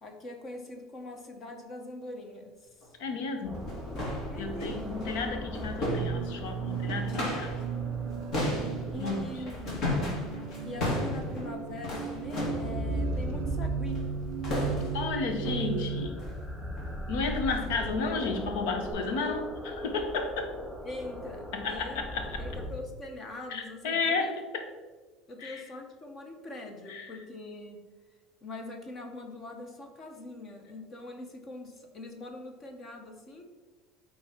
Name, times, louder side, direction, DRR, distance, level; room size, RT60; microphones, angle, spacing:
voice 1, 0.0-2.9 4.3-4.8 8.9-9.6 10.6-14.0 20.8-24.3 25.3-27.8 28.4-33.4, left 1 dB, 30° left, 4 dB, 0.9 m, -42 dB
sound 1, 2.8-2.9 3.4-7.7 7.9-12.8 13.9-14.2 14.4-15.1 15.4-15.7 16.2-16.4 16.8-17.0 17.4-17.7 18.2-18.3 18.9-19.0, left 1 dB, 50° left, 2.3 m, -34 dB
voice 2, 3.0-3.6 4.4-7.6 8.9-9.4 14.9-16.2 17.1-20.5 21.5-22.4 23.5-24.7 25.4-25.6 26.9-27.1, left 4 dB, 85° left, 6 dB, 1.1 m, -32 dB
sound 2, 3.4-22.6, equal, 5° left, 2.2 m, -39 dB
sound 3, 5.9-16.1, right 8 dB, 85° right, 0.4 m, -36 dB
8.7 x 3.8 x 4.4 m, 1.3 s
cardioid pair, 135°, 0 cm